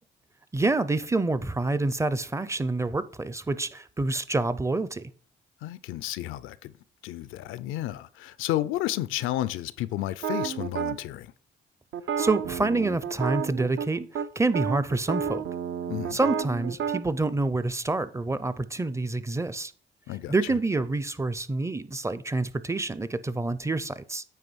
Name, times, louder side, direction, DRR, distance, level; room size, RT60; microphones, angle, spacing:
voice 1, 0.5-5.1 12.2-15.4 16.1-19.7 20.3-24.2, right 2 dB, 15° right, 0.5 m, -27 dB
voice 2, 5.6-6.7 7.0-11.3 15.9-16.2 20.1-20.4, left 14 dB, 90° left, 0.5 m, -32 dB
sound 1, 10.2-11.0 11.9-13.9 14.1-14.3 14.5-17.0, right 7 dB, 70° right, 0.7 m, -30 dB
9.1 x 3.1 x 6.2 m
cardioid pair, 90°, 20 cm